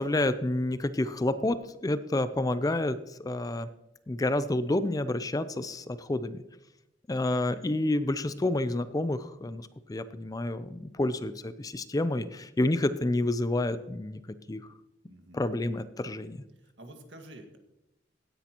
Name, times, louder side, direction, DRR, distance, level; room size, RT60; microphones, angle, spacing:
voice 1, 0.0-3.7 4.1-6.4 7.1-14.2 14.5-14.7 15.3-16.4, left 2 dB, 20° left, 13 dB, 0.4 m, -29 dB
voice 2, 15.1-15.4 16.8-17.6, right 1 dB, 85° right, 4 dB, 1.7 m, -48 dB
16.0 x 10.0 x 2.9 m, 0.93 s
head